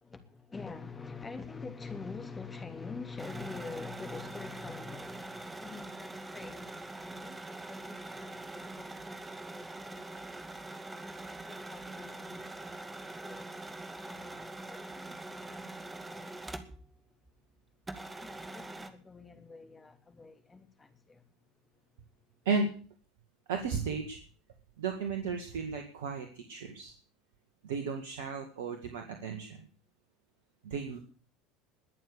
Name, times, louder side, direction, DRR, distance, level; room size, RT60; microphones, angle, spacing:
voice 1, 0.0-16.5 18.1-21.3, left 4 dB, 20° left, 3.1 m, -46 dB
sound 1, 3.2-17.0 17.3-17.4 17.9-18.9, right 2 dB, 15° right, 2.2 m, -44 dB
voice 2, 23.5-24.2 24.8-26.9 27.6-29.7 30.6-31.0, right 5 dB, 70° right, 2.0 m, -34 dB
21.0 x 7.1 x 8.2 m
hypercardioid pair, 70°, 0 cm